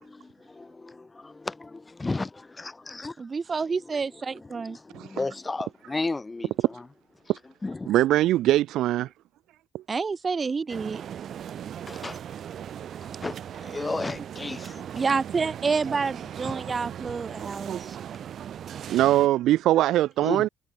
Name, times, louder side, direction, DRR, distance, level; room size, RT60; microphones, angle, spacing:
voice 1, 0.0-3.2 3.6-6.9 7.6-8.0 11.9-12.2 13.2-15.2 16.4-16.6 20.2-20.5, left 3 dB, 20° left, 1.8 m, -34 dB
voice 2, 3.2-4.8 9.9-11.0 14.9-17.7, right 5 dB, 35° right, 1.5 m, -28 dB
voice 3, 7.9-9.1 9.7-9.8 18.9-20.5, right 14 dB, 85° right, 0.5 m, -21 dB
sound 1, 10.7-19.3, right 9 dB, 65° right, 2.7 m, -38 dB
cardioid pair, 90°, 0 cm